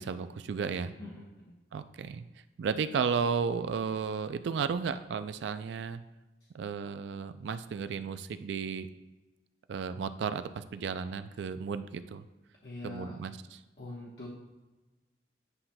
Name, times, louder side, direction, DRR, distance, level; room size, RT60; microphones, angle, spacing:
voice 1, 0.0-0.9 1.7-2.2 2.6-6.0 6.5-8.9 9.7-12.2 12.8-13.6, right 6 dB, 75° right, 11 dB, 0.3 m, -33 dB
voice 2, 1.0-1.5 12.6-13.2 13.8-14.3, left 2 dB, 60° left, -5 dB, 1.0 m, -43 dB
9.8 x 5.7 x 2.2 m, 1.1 s
head